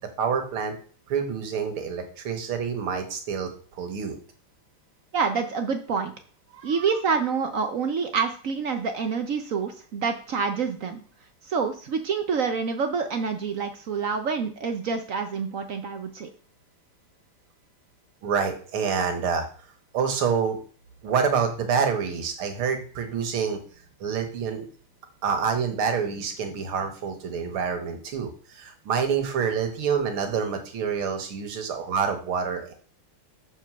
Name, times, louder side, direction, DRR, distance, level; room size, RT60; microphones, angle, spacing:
voice 1, 0.2-0.7 1.1-4.2 6.5-6.8 18.2-19.5 19.9-20.6 21.0-23.6 24.0-24.7 25.2-32.7, right 6 dB, 80° right, 5 dB, 2.2 m, -27 dB
voice 2, 5.1-6.1 6.6-11.0 11.4-16.3, right 5 dB, 65° right, 6 dB, 0.8 m, -27 dB
7.1 x 4.5 x 6.0 m, 0.43 s
omnidirectional pair, 2.3 m